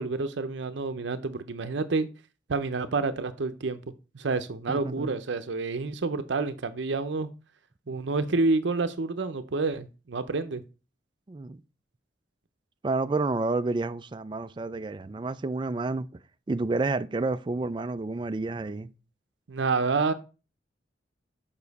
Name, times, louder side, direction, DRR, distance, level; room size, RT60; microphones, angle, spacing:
voice 1, 0.0-2.1 2.5-3.8 4.1-7.3 7.9-10.6 19.5-20.1, right 3 dB, 70° right, 0.6 m, -28 dB
voice 2, 4.7-5.2 11.3-11.6 12.8-16.1 16.5-18.9, right 3 dB, 25° right, 0.3 m, -29 dB
7.0 x 5.5 x 4.0 m
head